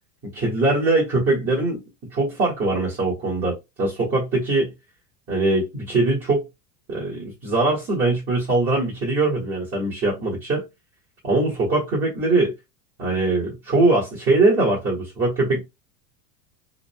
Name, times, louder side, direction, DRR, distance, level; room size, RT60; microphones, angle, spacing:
voice 1, 0.2-1.8 2.1-4.7 5.3-6.4 6.9-10.6 11.2-12.5 13.0-15.6, right 2 dB, 30° right, 1.6 m, -22 dB
3.8 x 2.6 x 2.2 m
hypercardioid pair, 110°, 49 cm